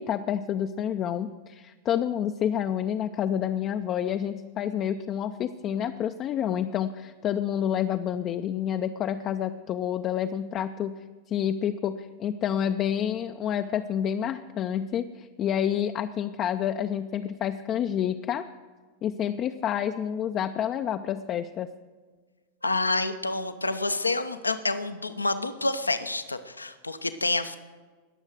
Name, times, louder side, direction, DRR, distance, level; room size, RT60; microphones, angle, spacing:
voice 1, 0.0-11.0 11.3-18.4 19.0-21.7, left 9 dB, 30° left, 7 dB, 0.4 m, -29 dB
voice 2, 22.6-27.6, left 2 dB, 80° left, 11 dB, 0.7 m, -28 dB
20.0 x 7.2 x 6.3 m, 1.4 s
figure-of-eight pair, 90°, 0 cm